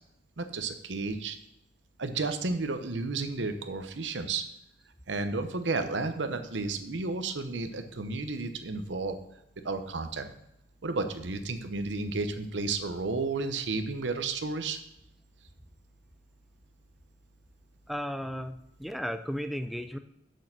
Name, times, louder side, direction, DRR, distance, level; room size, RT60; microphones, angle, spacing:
voice 1, 0.4-1.4 2.0-4.4 5.1-9.2 9.6-10.3 10.8-14.8, right 3 dB, 90° right, 8 dB, 0.9 m, -32 dB
voice 2, 17.9-20.0, equal, ahead, 8 dB, 0.4 m, -35 dB
6.6 x 6.4 x 5.8 m, 0.83 s
head